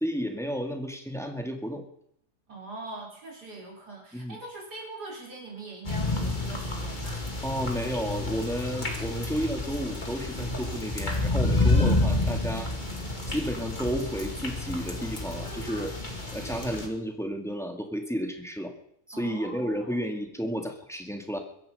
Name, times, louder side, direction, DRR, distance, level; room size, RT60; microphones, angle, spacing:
voice 1, 0.0-1.8 4.1-4.4 7.4-12.7 13.3-15.9 16.3-18.7 19.1-21.4, equal, ahead, 3 dB, 2.1 m, -32 dB
voice 2, 2.5-7.2 19.1-20.1, right 2 dB, 75° right, -2 dB, 5.4 m, -42 dB
sound 1, 5.8-16.9, left 2 dB, 30° left, 2.3 m, -29 dB
23.0 x 10.5 x 5.5 m, 0.71 s
omnidirectional pair, 1.7 m